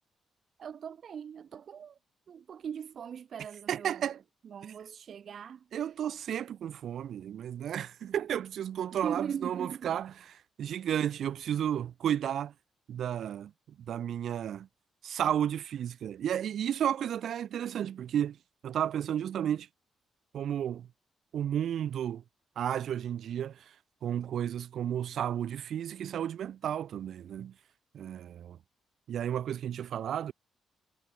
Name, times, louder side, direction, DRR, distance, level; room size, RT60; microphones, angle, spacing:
voice 1, 0.6-2.0 2.3-4.2 4.4-5.9 8.9-10.0, right 8 dB, 50° right, 6.6 m, -40 dB
voice 2, 3.7-4.2 5.7-10.1 10.6-12.5 12.9-13.5 13.9-14.7 15.0-18.4 18.6-19.7 20.3-20.9 21.3-22.2 22.6-23.7 24.0-27.5 27.9-28.6 29.1-30.3, right 10 dB, 65° right, 7.3 m, -32 dB
wide cardioid pair, 165°, 0 cm